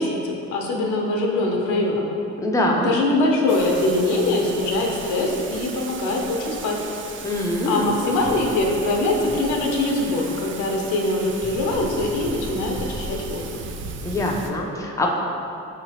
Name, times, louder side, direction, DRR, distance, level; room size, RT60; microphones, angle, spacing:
voice 1, 0.0-2.1 2.8-6.8 7.7-13.5, left 2 dB, 80° left, -1 dB, 0.7 m, -23 dB
voice 2, 2.4-2.9 7.2-7.9 14.0-15.1, left 1 dB, 10° left, -1 dB, 0.5 m, -23 dB
Thunder / Rain, 3.5-14.5, right 4 dB, 40° right, 0.4 m, -36 dB
5.8 x 3.0 x 2.8 m, 2.8 s
cardioid pair, 90°, 30 cm